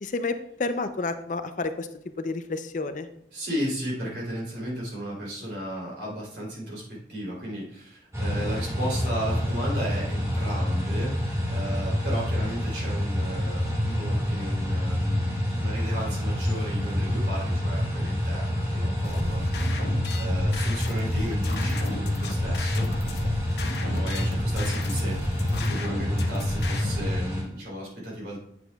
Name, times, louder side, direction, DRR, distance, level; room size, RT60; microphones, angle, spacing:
voice 1, 0.0-1.9 2.2-3.1, left 3 dB, 45° left, 9 dB, 0.4 m, -30 dB
voice 2, 3.3-15.3 15.5-22.9 23.8-28.4, equal, 65° right, -3 dB, 3.1 m, -35 dB
sound 1, 8.1-27.4, left 1 dB, 15° right, 1.9 m, -27 dB
sound 2, 19.0-27.1, left 2 dB, 70° left, 0.8 m, -35 dB
8.8 x 7.8 x 2.3 m, 0.72 s
head